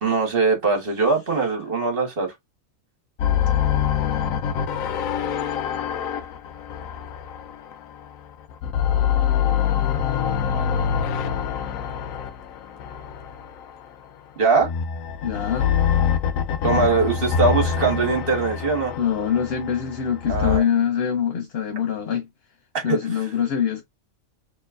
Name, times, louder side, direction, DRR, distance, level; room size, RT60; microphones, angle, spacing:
voice 1, 0.0-2.3 14.4-14.7 16.6-18.9 20.3-20.6 22.7-23.2, right 4 dB, 45° right, 1.7 m, -21 dB
sound 1, 3.2-8.2 8.5-13.8 14.6-20.6, left 8 dB, 85° left, 1.0 m, -25 dB
voice 2, 15.2-15.7 19.0-22.3 22.8-23.8, left 8 dB, 55° left, 0.9 m, -24 dB
4.3 x 3.2 x 2.4 m
omnidirectional pair, 1.4 m